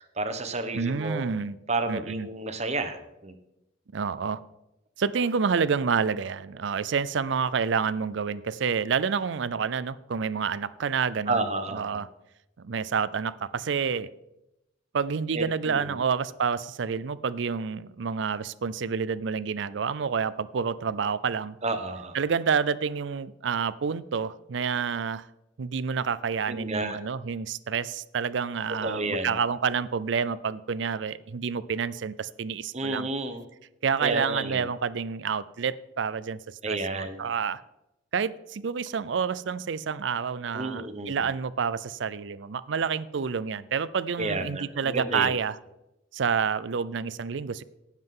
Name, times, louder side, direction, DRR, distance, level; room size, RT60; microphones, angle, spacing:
voice 1, 0.0-1.3 1.7-3.3 11.3-11.9 15.3-16.0 21.6-22.2 26.5-27.0 28.8-29.3 32.7-33.4 34.0-34.7 36.6-37.2 40.5-41.1 44.2-45.3, right 2 dB, 35° right, 8 dB, 1.0 m, -31 dB
voice 2, 0.7-1.6 1.9-2.3 3.9-4.4 5.0-12.1 12.6-14.1 14.9-21.6 22.1-25.3 25.6-33.1 33.8-37.6 38.1-45.6 46.1-47.6, right 6 dB, 65° right, 17 dB, 0.5 m, -28 dB
17.5 x 7.4 x 3.8 m, 0.90 s
head